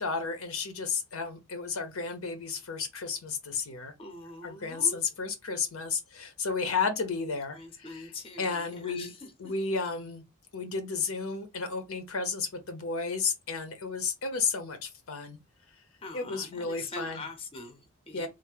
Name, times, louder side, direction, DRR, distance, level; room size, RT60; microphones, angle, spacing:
voice 1, 0.0-3.9 4.4-8.1 8.4-9.1 9.4-10.2 10.5-15.4 16.1-17.2 18.1-18.3, left 5 dB, 75° left, 0.7 m, -32 dB
voice 2, 4.0-5.0 7.2-9.5 16.0-18.3, left 2 dB, 25° left, 0.7 m, -43 dB
3.2 x 2.1 x 3.4 m
head